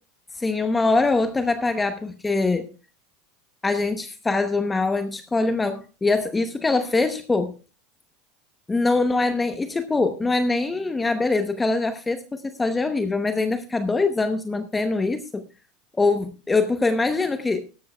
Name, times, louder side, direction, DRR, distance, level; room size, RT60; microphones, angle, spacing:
voice 1, 0.3-2.7 3.6-7.5 8.7-15.5 16.0-17.7, left 3 dB, 15° left, 8 dB, 0.9 m, -23 dB
16.5 x 13.5 x 2.3 m, 0.33 s
supercardioid pair, 110°, 0 cm